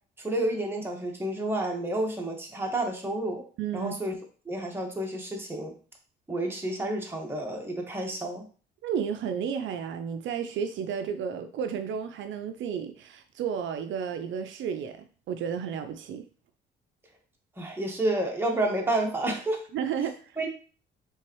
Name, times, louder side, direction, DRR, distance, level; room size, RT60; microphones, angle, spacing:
voice 1, 0.2-3.4 3.7-4.1 4.4-5.7 6.3-8.5 17.6-19.6 20.4-20.5, right 1 dB, 10° right, 0 dB, 1.3 m, -30 dB
voice 2, 3.6-3.9 8.8-16.2 19.7-20.4, right 7 dB, 75° right, 8 dB, 0.4 m, -32 dB
4.5 x 3.4 x 3.0 m, 0.39 s
cardioid pair, 90°, 20 cm